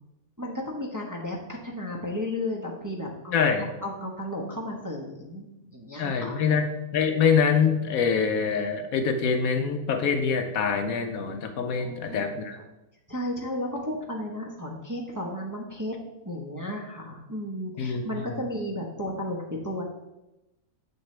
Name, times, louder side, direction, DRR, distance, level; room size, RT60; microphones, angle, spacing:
voice 1, 0.4-3.5 3.8-6.4 11.8-12.2 13.1-15.9 16.2-19.8, left 1 dB, 15° right, -2 dB, 0.9 m, -33 dB
voice 2, 3.3-3.7 6.0-12.6 17.8-18.2, left 6 dB, 70° left, 7 dB, 1.1 m, -25 dB
7.7 x 6.8 x 3.3 m, 0.96 s
omnidirectional pair, 1.6 m